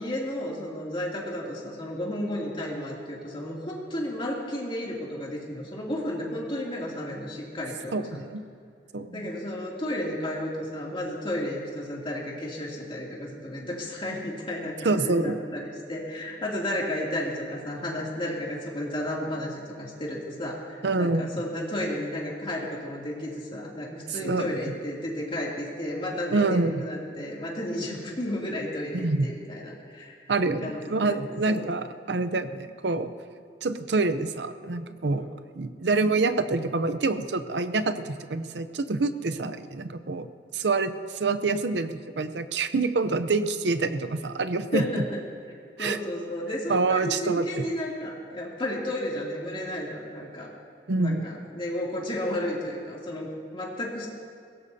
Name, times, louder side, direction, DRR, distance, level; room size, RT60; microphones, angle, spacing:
voice 1, 0.0-8.3 9.1-30.1 30.6-31.2 31.5-31.7 35.1-35.3 44.7-45.2 45.8-50.5 51.0-54.1, left 1 dB, 30° left, -3 dB, 2.7 m, -33 dB
voice 2, 7.9-8.4 8.9-9.2 14.8-15.4 20.8-21.2 24.2-24.5 26.3-26.8 28.9-29.3 30.3-33.1 33.6-35.2 35.5-40.3 40.5-45.0 45.8-46.0 46.7-47.7 50.9-51.2, right 3 dB, 75° right, 11 dB, 0.7 m, -26 dB
21.5 x 17.5 x 2.8 m, 2.3 s
head